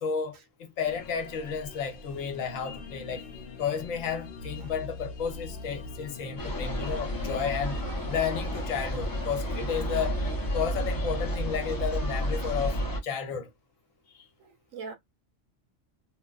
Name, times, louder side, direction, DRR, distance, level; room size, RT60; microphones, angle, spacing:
voice 1, 0.0-3.2 3.6-7.8 8.1-10.2 10.5-13.5, left 7 dB, 80° left, 1.1 m, -32 dB
sound 1, 0.8-12.8, left 4 dB, 60° left, 0.7 m, -43 dB
sound 2, 6.4-13.0, equal, 30° left, 0.4 m, -31 dB
voice 2, 6.8-8.0 8.3-8.4 8.8-9.4 9.9-10.1 12.3-12.9 14.4-14.9, right 4 dB, 85° right, 1.2 m, -47 dB
3.1 x 2.0 x 2.3 m
omnidirectional pair, 1.3 m